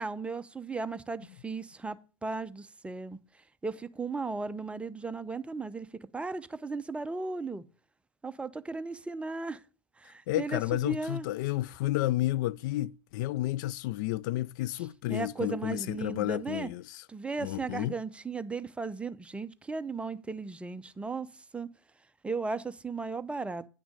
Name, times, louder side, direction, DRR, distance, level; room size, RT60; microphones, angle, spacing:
voice 1, 0.0-3.2 3.6-5.9 6.1-7.6 8.2-9.6 10.0-11.3 14.8-16.7 17.1-21.7 22.2-23.7, right 4 dB, 10° right, 0.6 m, -36 dB
voice 2, 10.3-17.0 17.4-17.9, left 16 dB, 55° left, 0.4 m, -31 dB
10.0 x 6.0 x 5.2 m
hypercardioid pair, 95°, 12 cm